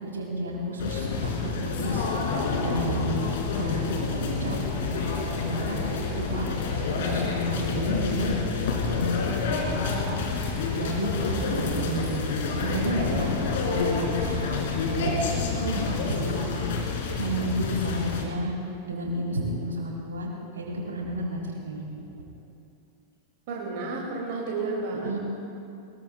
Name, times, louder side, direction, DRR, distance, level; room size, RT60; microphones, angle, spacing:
voice 1, 0.0-2.1 2.6-3.2 3.6-3.8 4.1-5.8 6.1-6.5 6.9-8.3 8.8-9.3 9.6-10.1 10.8-14.5 14.8-16.6 17.2-18.5 18.9-20.3 20.5-21.8 25.0-25.2, right 1 dB, 70° right, -2 dB, 4.1 m, -31 dB
sound 1, 0.8-18.3, left 4 dB, 55° left, 2.7 m, -28 dB
voice 2, 23.5-25.2, right 3 dB, 50° right, -3 dB, 2.8 m, -31 dB
23.0 x 21.5 x 2.4 m, 2.6 s
figure-of-eight pair, 90°, 0 cm